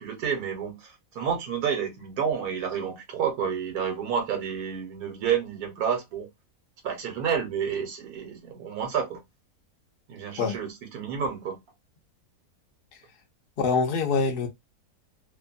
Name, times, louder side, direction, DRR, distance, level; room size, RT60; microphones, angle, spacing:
voice 1, 0.0-6.3 6.8-9.2 10.1-11.6, right 7 dB, 75° right, 1.3 m, -30 dB
voice 2, 13.6-14.5, left 4 dB, 60° left, 0.5 m, -24 dB
2.9 x 2.2 x 2.5 m
omnidirectional pair, 1.7 m